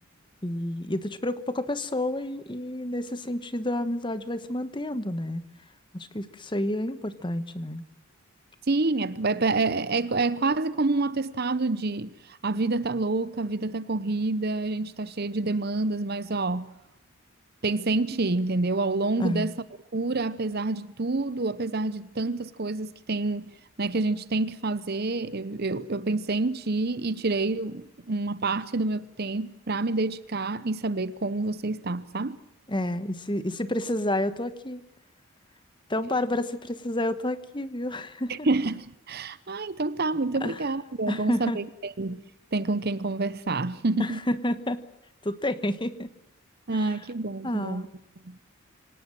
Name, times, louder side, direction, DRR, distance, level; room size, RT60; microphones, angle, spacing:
voice 1, 0.4-5.4 5.9-7.8 19.2-19.5 32.7-34.8 35.9-38.5 40.4-40.6 41.1-41.6 44.0-44.8 45.2-46.1 46.7-46.9 47.4-47.9, left 1 dB, 20° left, 1.2 m, -30 dB
voice 2, 8.7-16.7 17.6-19.5 19.9-23.4 23.8-32.4 38.3-42.2 42.5-44.2 46.7-47.9 48.3-48.4, right 3 dB, 45° right, 0.8 m, -28 dB
25.5 x 18.5 x 7.7 m
head